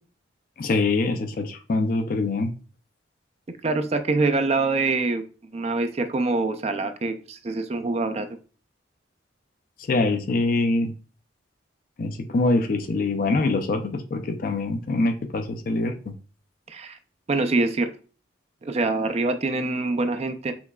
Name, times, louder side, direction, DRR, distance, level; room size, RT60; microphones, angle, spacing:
voice 1, 0.6-2.5 9.8-10.9 12.0-16.1, left 2 dB, 45° left, 0.4 m, -24 dB
voice 2, 3.6-5.2 5.5-8.3 16.7-17.0 17.3-17.9 18.6-20.5, right 3 dB, 35° right, 0.4 m, -25 dB
5.9 x 3.1 x 2.3 m
head